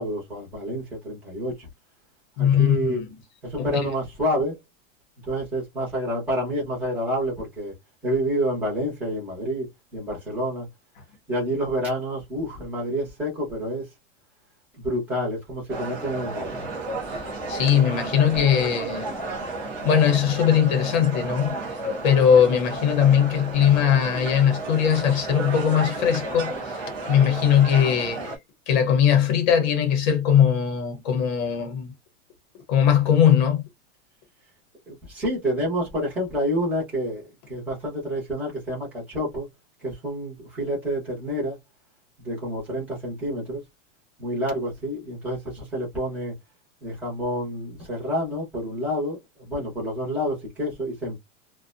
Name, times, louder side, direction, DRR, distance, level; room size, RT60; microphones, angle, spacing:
voice 1, 0.0-1.7 2.4-3.0 3.4-4.6 5.3-7.7 8.0-10.7 11.3-13.9 14.8-16.7 34.9-39.5 39.8-41.6 42.2-43.6 44.2-46.3 46.8-51.2, equal, 5° right, 0.8 m, -28 dB
voice 2, 2.4-3.0 3.6-3.9 17.1-17.2 17.5-19.2 19.8-21.5 22.0-26.8 27.1-28.3 28.7-31.9 32.7-33.6, left 8 dB, 35° left, 0.8 m, -20 dB
sound 1, 15.7-28.4, right 2 dB, 20° right, 0.4 m, -32 dB
2.6 x 2.2 x 2.5 m
supercardioid pair, 180°, 38 cm